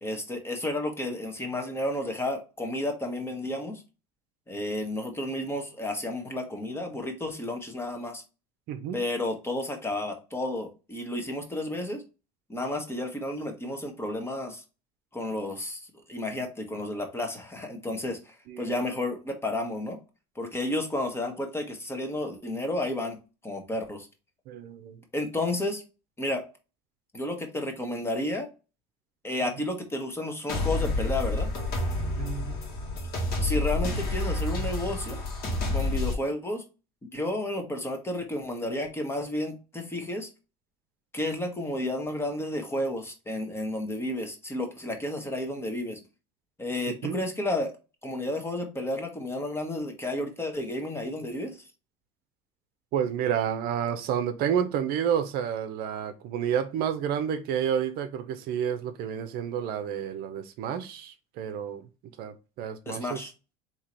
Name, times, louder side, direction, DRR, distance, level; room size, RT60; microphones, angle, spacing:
voice 1, 0.0-3.8 4.5-8.2 8.9-12.0 12.5-14.6 15.1-15.8 16.1-20.0 20.4-23.2 23.4-24.1 25.1-25.8 26.2-26.4 27.1-28.5 29.2-31.5 33.4-35.2 35.7-36.6 37.0-40.3 41.1-46.0 46.6-47.7 48.0-51.6 62.9-63.3, left 1 dB, 15° left, 1.2 m, -31 dB
voice 2, 8.7-9.0 18.5-18.8 24.5-25.0 32.2-32.5 47.0-47.2 52.9-61.8 62.2-63.2, right 8 dB, 60° right, 0.6 m, -30 dB
sound 1, 30.5-36.1, left 2 dB, 60° left, 1.5 m, -29 dB
3.6 x 2.9 x 4.3 m
supercardioid pair, 110°, 18 cm